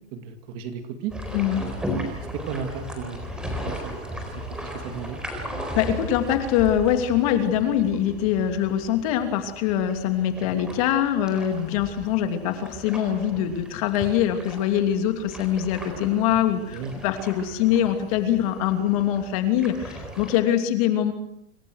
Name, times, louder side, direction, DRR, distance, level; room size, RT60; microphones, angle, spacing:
voice 1, 0.1-1.1 1.6-1.7 2.3-3.3 3.6-5.2 16.3-16.4 16.7-16.9, right 7 dB, 25° right, 7 dB, 2.3 m, -35 dB
sound 1, 1.1-20.4, equal, ahead, 4.0 m, -37 dB
voice 2, 1.3-1.6 5.8-21.1, left 10 dB, 30° left, 7 dB, 2.8 m, -23 dB
28.5 x 27.5 x 6.5 m, 0.77 s
supercardioid pair, 180°, 33 cm